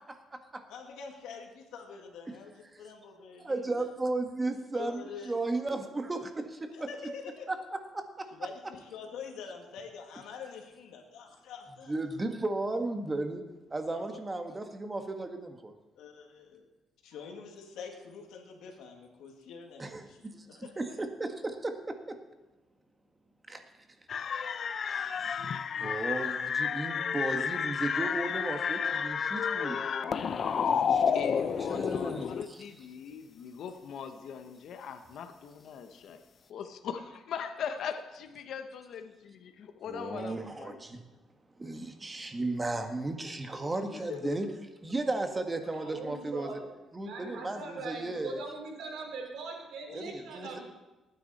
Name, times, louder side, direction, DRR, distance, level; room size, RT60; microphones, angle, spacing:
voice 1, 0.0-0.6 2.3-2.4 3.4-6.7 7.5-8.3 11.9-13.5 13.7-15.7 19.8-22.2 23.5-23.6 24.8-25.5 25.8-29.8 30.9-32.6 39.9-41.0 41.6-44.5 44.8-46.5 46.9-48.4 49.9-50.6, right 2 dB, 20° right, 1.6 m, -35 dB
voice 2, 0.7-3.9 4.7-5.4 6.7-7.5 8.3-12.0 13.9-14.0 16.0-16.6 17.0-20.7 30.2-31.6 32.2-32.3 43.9-44.4 49.9-50.0, left 6 dB, 90° left, 2.1 m, -46 dB
sound 1, 24.1-32.4, left 7 dB, 55° left, 0.7 m, -30 dB
voice 3, 31.0-36.2 36.5-40.8, left 7 dB, 70° left, 1.1 m, -40 dB
voice 4, 45.7-46.7 47.0-50.6, right 3 dB, 80° right, 3.6 m, -41 dB
19.5 x 9.6 x 4.3 m
cardioid pair, 90°, 0 cm